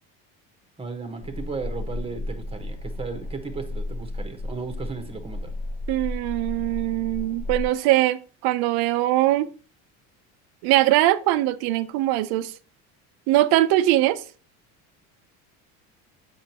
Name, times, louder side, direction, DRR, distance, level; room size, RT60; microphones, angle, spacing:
voice 1, 0.8-5.5, right 4 dB, 15° right, 1.2 m, -35 dB
sound 1, 1.2-7.7, left 2 dB, 85° left, 2.2 m, -33 dB
voice 2, 5.9-9.5 10.6-12.5 13.3-14.2, right 15 dB, 80° right, 0.7 m, -21 dB
7.6 x 5.8 x 2.9 m
cardioid pair, 110°, 37 cm